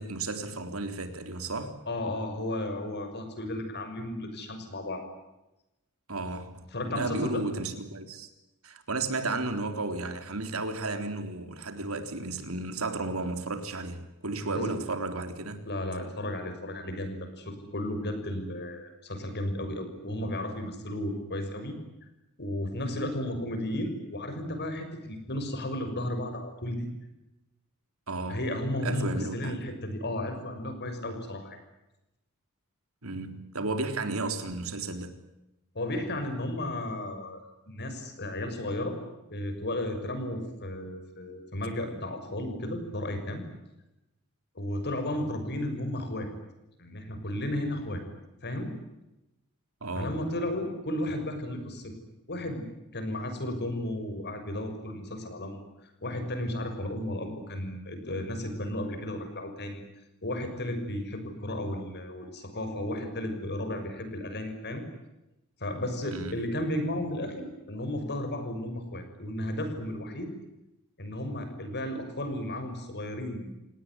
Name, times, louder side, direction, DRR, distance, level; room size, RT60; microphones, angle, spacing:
voice 1, 0.0-1.7 6.1-8.3 8.6-15.6 28.1-28.5 28.8-29.6 33.0-35.2 49.8-50.2 66.1-66.5, right 2 dB, 70° right, 3.7 m, -33 dB
voice 2, 1.9-5.0 6.7-7.4 14.5-14.8 15.7-21.8 22.4-26.9 28.3-31.6 35.7-37.4 37.7-39.0 39.3-43.4 44.5-46.3 46.8-48.0 48.4-48.8 49.9-51.9 52.3-52.7 52.9-59.8 60.2-64.8 65.6-70.3 71.0-73.5, left 1 dB, 50° left, 6.3 m, -34 dB
29.0 x 18.5 x 9.8 m
head